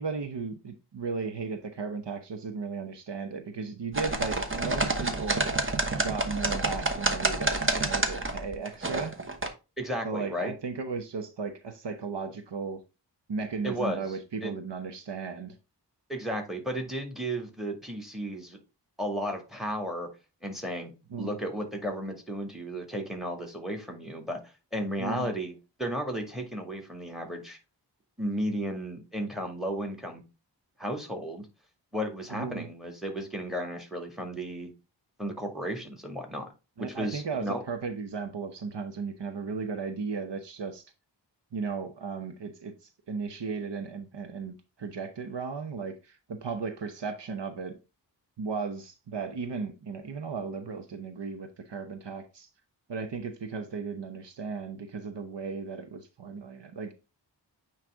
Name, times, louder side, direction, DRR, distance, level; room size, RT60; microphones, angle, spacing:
voice 1, 0.0-5.5 6.0-9.1 10.0-12.8 13.3-15.6 21.1-21.4 25.0-25.3 32.3-32.7 36.8-40.9 41.5-42.7 43.1-47.7 48.4-52.5 52.9-56.9, right 5 dB, 75° right, 1.0 m, -35 dB
sound 1, 3.9-9.5, right 2 dB, 30° right, 1.1 m, -28 dB
voice 2, 9.8-10.5 13.6-14.0 14.4-14.5 16.1-18.6 19.0-20.1 20.4-20.9 21.2-24.4 24.7-25.5 25.8-27.6 28.2-30.2 30.8-31.5 31.9-34.7 35.2-36.5 36.8-37.6, equal, ahead, 2.0 m, -34 dB
8.9 x 3.3 x 3.5 m
wide cardioid pair, 55°, 43 cm